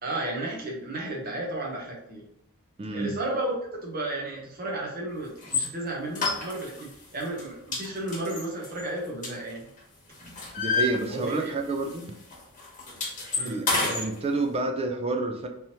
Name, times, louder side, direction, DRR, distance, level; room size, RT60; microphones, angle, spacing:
voice 1, 0.0-2.2 2.9-3.5 3.8-9.6 11.1-11.5 13.3-13.6, right 2 dB, 40° right, -2 dB, 0.8 m, -33 dB
voice 2, 2.8-3.1 10.6-12.0 13.4-15.5, right 3 dB, 25° right, 5 dB, 0.3 m, -29 dB
sound 1, 5.4-5.7 6.1-6.9 7.2-7.4 7.7-9.8 10.1-11.6 11.8-12.0 12.3-14.1, left 3 dB, 35° left, 1.1 m, -29 dB
3.4 x 2.8 x 2.9 m, 0.76 s
head